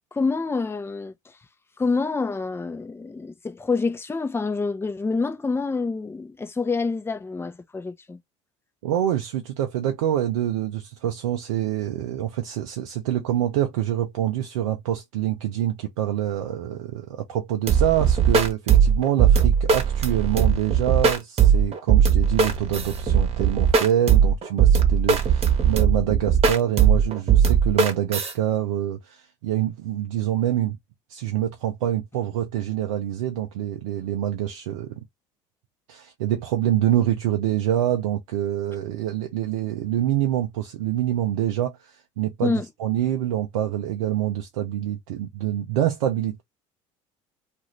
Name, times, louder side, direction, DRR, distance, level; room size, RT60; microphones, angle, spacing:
voice 1, 0.1-1.1 1.8-8.2 42.4-42.7, left 4 dB, 15° left, 0.6 m, -27 dB
voice 2, 8.8-30.8 31.1-35.0 35.9-46.4, right 11 dB, 85° right, 0.6 m, -26 dB
sound 1, 17.7-28.3, right 7 dB, 40° right, 1.1 m, -19 dB
2.6 x 2.5 x 3.1 m
hypercardioid pair, 75°, 16 cm